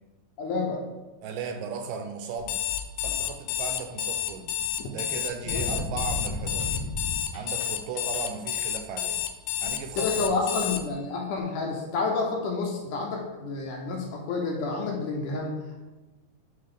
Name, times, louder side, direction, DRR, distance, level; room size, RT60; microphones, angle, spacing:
voice 1, 0.4-0.8 5.5-5.6 10.0-15.6, left 3 dB, 75° left, 0 dB, 2.1 m, -29 dB
voice 2, 1.2-2.6 3.0-4.5 4.9-6.8 7.3-9.2 9.6-10.5, right 6 dB, 80° right, 6 dB, 2.0 m, -36 dB
Alarm, 2.4-10.8, left 11 dB, 90° left, 1.7 m, -30 dB
sound 1, 5.4-7.6 7.9-8.4, left 2 dB, 55° left, 2.6 m, -33 dB
8.6 x 3.5 x 3.8 m, 1.2 s
omnidirectional pair, 4.0 m